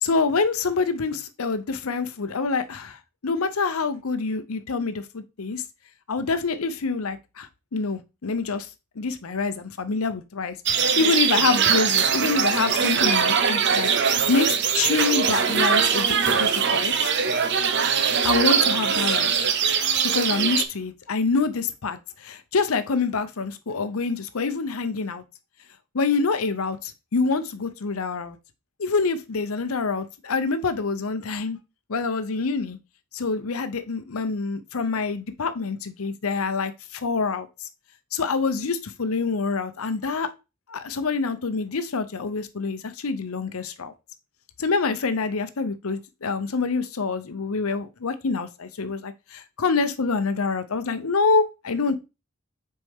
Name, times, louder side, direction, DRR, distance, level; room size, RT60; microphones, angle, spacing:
voice 1, 0.0-5.6 6.1-8.7 9.0-10.6 11.0-16.1 16.4-17.1 18.2-19.4 20.0-25.2 25.9-28.4 28.8-31.6 31.9-32.8 33.1-37.7 38.1-40.3 40.7-43.9 44.6-51.9, left 4 dB, 75° left, 0.7 m, -26 dB
sound 1, 10.7-20.6, right 7 dB, 50° right, 0.6 m, -22 dB
6.3 x 4.4 x 3.6 m
head